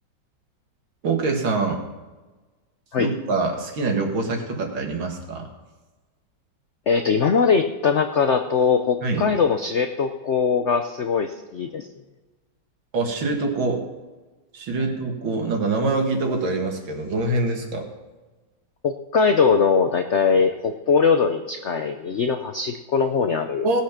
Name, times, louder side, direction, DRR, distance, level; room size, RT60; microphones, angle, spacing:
voice 1, 1.0-1.8 3.0-5.5 9.0-9.3 12.9-13.8 14.5-17.9 23.6-23.8, right 3 dB, 80° right, 3 dB, 2.5 m, -24 dB
voice 2, 6.9-11.9 18.8-23.7, left 5 dB, 80° left, 6 dB, 0.6 m, -21 dB
18.0 x 7.4 x 5.8 m, 1.2 s
omnidirectional pair, 2.1 m